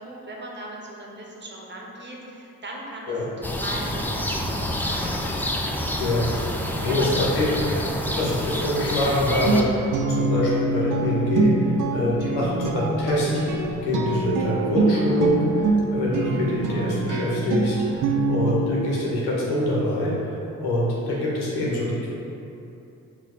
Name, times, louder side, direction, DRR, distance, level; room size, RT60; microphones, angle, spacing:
voice 1, 0.0-5.2 5.7-6.0 6.3-6.5 6.8-7.1 7.7-7.8 8.1-8.3, right 1 dB, 30° right, -2 dB, 0.9 m, -39 dB
sound 1, 3.4-9.6, left 1 dB, 5° left, 0.3 m, -27 dB
voice 2, 6.8-7.5 8.2-13.6 13.8-22.1, left 1 dB, 90° left, -6 dB, 0.9 m, -25 dB
Guitar, 9.5-18.5, right 3 dB, 55° right, 0.5 m, -24 dB
4.2 x 2.3 x 3.8 m, 2.8 s
supercardioid pair, 45°, 37 cm